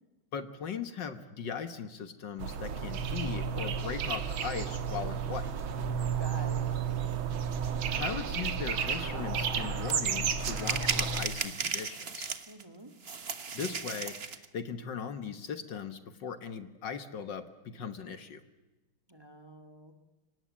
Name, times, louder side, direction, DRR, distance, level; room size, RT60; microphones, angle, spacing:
voice 1, 0.3-5.5 7.9-12.3 13.5-18.4, left 6 dB, 60° left, 11 dB, 1.9 m, -39 dB
sound 1, 2.4-11.2, right 6 dB, 75° right, 2.2 m, -32 dB
voice 2, 6.2-6.7 12.5-12.9 19.1-20.0, equal, 10° right, 7 dB, 1.8 m, -47 dB
sound 2, 9.9-10.0 10.4-12.6 13.0-14.4, right 5 dB, 35° right, 1.3 m, -35 dB
25.0 x 19.0 x 8.7 m, 1.1 s
omnidirectional pair, 2.2 m